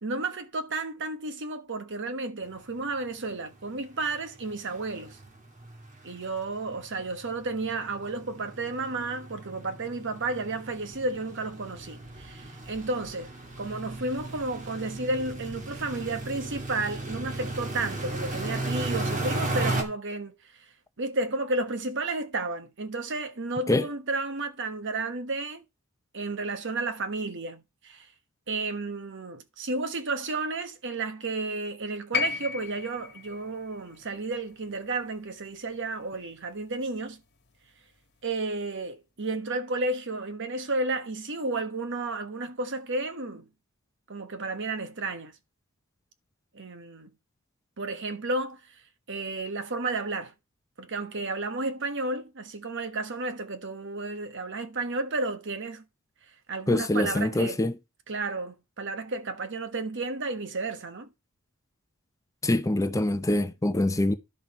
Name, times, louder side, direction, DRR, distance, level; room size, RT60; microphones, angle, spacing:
voice 1, 0.0-5.2 6.0-20.7 21.0-25.6 26.1-28.1 28.5-37.2 38.2-43.5 44.1-45.3 46.5-47.1 47.8-48.8 49.1-50.3 50.8-55.8 56.5-57.6 58.1-61.1, right 3 dB, 60° right, 1.3 m, -32 dB
sound 1, 2.7-2.8 3.1-3.3 3.6-3.7 4.0-19.8, right 2 dB, 35° right, 2.2 m, -35 dB
sound 2, 32.1-36.3 37.5-37.6, left 6 dB, 50° left, 1.4 m, -35 dB
voice 2, 56.7-57.7 62.4-64.2, left 1 dB, 15° left, 0.6 m, -24 dB
11.0 x 6.2 x 4.3 m
head